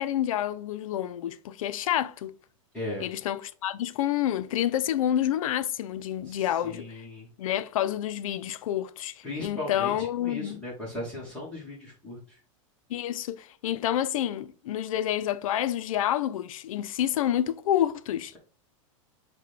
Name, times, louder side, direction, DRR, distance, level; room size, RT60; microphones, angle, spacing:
voice 1, 0.0-2.3 3.0-7.0 7.4-10.6 12.9-18.3, left 11 dB, 85° left, 0.4 m, -28 dB
voice 2, 2.7-3.1 6.3-7.3 9.2-12.2, left 1 dB, 5° left, 0.9 m, -37 dB
5.7 x 2.2 x 3.2 m
supercardioid pair, 170°, 17 cm